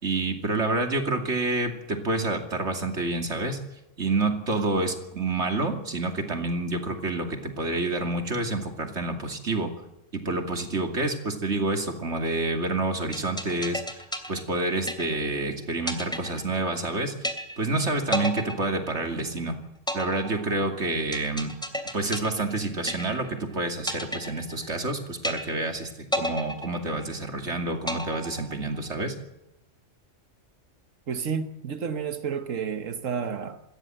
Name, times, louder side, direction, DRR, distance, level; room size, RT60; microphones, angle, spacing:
voice 1, 0.0-3.6 4.0-9.7 10.1-14.0 14.3-17.1 17.6-19.6 19.9-21.5 21.9-25.9 26.1-29.1, right 2 dB, 65° right, 3.0 m, -28 dB
sound 1, 13.1-15.4 15.9-16.9 17.2-17.8 18.1-19.4 19.9-23.4 23.9-24.9 25.2-25.8 26.1-27.4 27.9-28.9, equal, 5° left, 2.6 m, -32 dB
voice 2, 31.1-33.6, right 6 dB, 90° right, 1.6 m, -31 dB
26.5 x 14.0 x 7.8 m
omnidirectional pair, 1.3 m